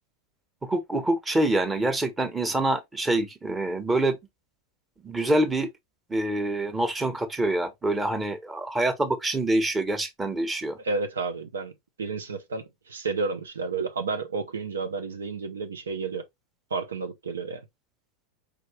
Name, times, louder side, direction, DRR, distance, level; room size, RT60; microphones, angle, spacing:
voice 1, 0.6-4.2 5.0-5.7 6.1-10.8, right 1 dB, 15° right, 1.2 m, -26 dB
voice 2, 10.8-11.7 12.0-16.3 16.7-17.6, right 4 dB, 85° right, 0.7 m, -31 dB
4.8 x 3.1 x 3.1 m
hypercardioid pair, 90°, 0 cm